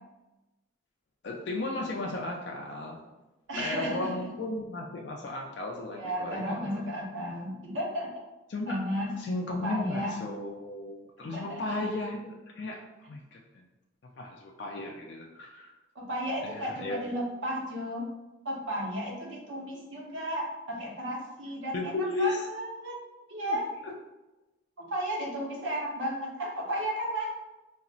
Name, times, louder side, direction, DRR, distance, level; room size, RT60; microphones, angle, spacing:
voice 1, 1.2-3.0 3.6-6.6 8.5-8.8 9.2-13.6 14.0-15.7 16.4-17.0 21.7-22.5 23.4-24.0, left 2 dB, 60° left, 0 dB, 0.3 m, -35 dB
voice 2, 3.5-4.3 6.0-8.3 8.7-9.1 9.6-10.2 11.2-11.8 15.9-18.1 18.4-23.0 23.3-23.7 24.8-27.3, equal, 75° right, -2 dB, 0.7 m, -34 dB
3.9 x 2.0 x 2.4 m, 1.0 s
head